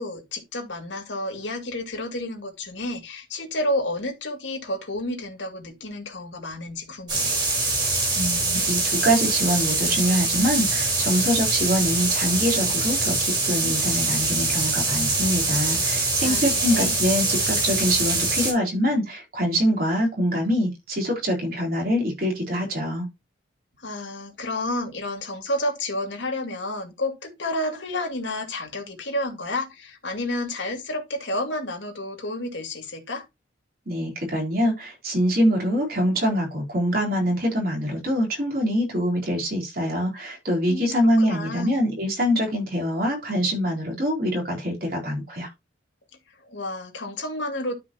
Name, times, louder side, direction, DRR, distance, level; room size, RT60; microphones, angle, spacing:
voice 1, 0.0-7.4 16.2-17.0 23.8-33.2 40.7-41.8 46.5-47.7, left 1 dB, 75° left, 2.6 m, -30 dB
sound 1, 7.1-18.5, right 3 dB, 25° right, 4.1 m, -24 dB
voice 2, 8.2-23.1 33.9-45.5, equal, 50° right, 4.0 m, -24 dB
12.5 x 5.2 x 3.0 m
head